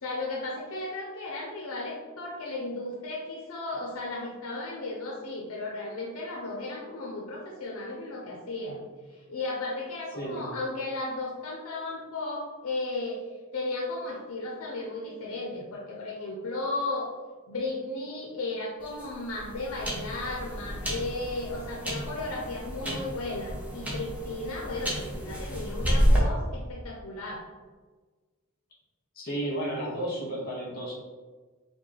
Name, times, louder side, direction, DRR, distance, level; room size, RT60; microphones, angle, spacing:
voice 1, 0.0-8.8 9.3-13.2 13.5-17.1 17.5-27.4, left 2 dB, 75° left, -2 dB, 0.6 m, -35 dB
sound 1, 18.8-26.2, equal, 5° right, 0.8 m, -30 dB
voice 2, 29.1-30.9, right 1 dB, 45° left, -4 dB, 1.4 m, -32 dB
4.6 x 2.2 x 3.1 m, 1.4 s
head